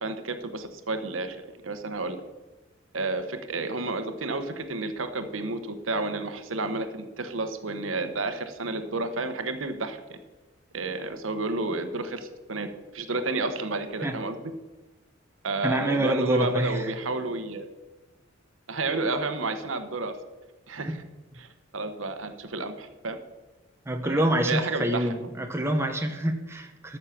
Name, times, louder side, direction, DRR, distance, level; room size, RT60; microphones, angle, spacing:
voice 1, 0.0-1.4 1.6-2.2 2.9-10.2 10.7-14.4 15.4-17.7 18.7-20.2 20.7-21.0 21.4-21.5 21.7-23.2 24.0-25.1, right 3 dB, 85° right, 8 dB, 1.1 m, -31 dB
voice 2, 15.6-16.9 20.9-21.0 23.9-27.0, right 1 dB, 15° right, 4 dB, 1.0 m, -26 dB
13.5 x 6.5 x 5.9 m, 1.2 s
head